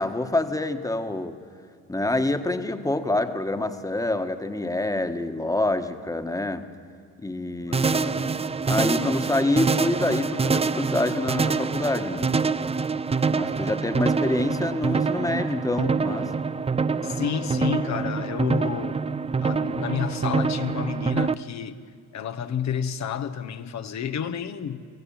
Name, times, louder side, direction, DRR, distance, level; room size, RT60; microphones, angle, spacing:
voice 1, 0.0-1.4 1.9-6.7 7.2-8.1 8.7-12.4 13.3-16.4, left 2 dB, 10° left, 1.5 m, -26 dB
voice 2, 7.6-8.4 17.0-19.0 19.4-21.8 22.1-24.9, left 8 dB, 65° left, 1.3 m, -30 dB
sound 1, 7.7-21.3, right 4 dB, 20° right, 0.5 m, -25 dB
24.0 x 15.5 x 8.8 m
cardioid pair, 90°, 30 cm